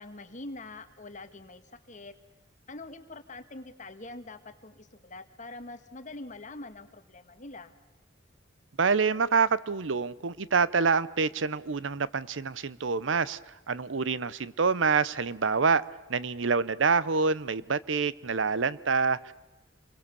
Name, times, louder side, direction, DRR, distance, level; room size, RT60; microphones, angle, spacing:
voice 1, 0.0-2.1 2.7-7.7, left 2 dB, 40° left, 9 dB, 1.6 m, -44 dB
voice 2, 8.8-13.4 13.7-15.8 16.1-19.3, right 5 dB, 75° right, 18 dB, 0.8 m, -26 dB
27.5 x 22.5 x 6.9 m, 1.0 s
head